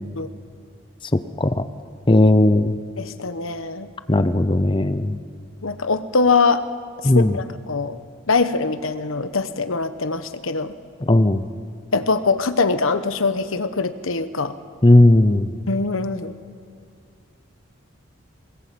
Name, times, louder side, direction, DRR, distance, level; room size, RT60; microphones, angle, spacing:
voice 1, 2.1-2.8 4.1-5.2 7.0-7.3 11.1-11.4 14.8-15.5, left 1 dB, 25° left, 11 dB, 0.7 m, -15 dB
voice 2, 3.0-3.9 5.6-6.6 7.1-8.0 8.3-10.7 11.9-14.6 15.7-16.4, left 4 dB, 85° left, 11 dB, 1.2 m, -22 dB
22.5 x 20.5 x 8.6 m, 2.2 s
head